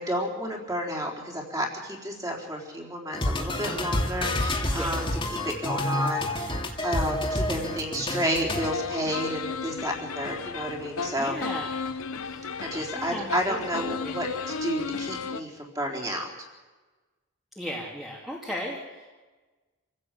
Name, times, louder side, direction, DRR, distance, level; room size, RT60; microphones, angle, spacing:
voice 1, 0.0-5.1 5.4-11.4 12.6-16.3, equal, 15° right, 0 dB, 4.0 m, -31 dB
sound 1, 3.1-8.7, left 1 dB, 25° left, 2.6 m, -28 dB
sound 2, 8.6-15.4, left 5 dB, 80° left, 1.1 m, -34 dB
voice 2, 11.2-11.8 12.2-12.5 12.9-14.2 17.5-19.1, equal, ahead, -4 dB, 2.8 m, -36 dB
27.0 x 16.0 x 8.5 m, 1.3 s
head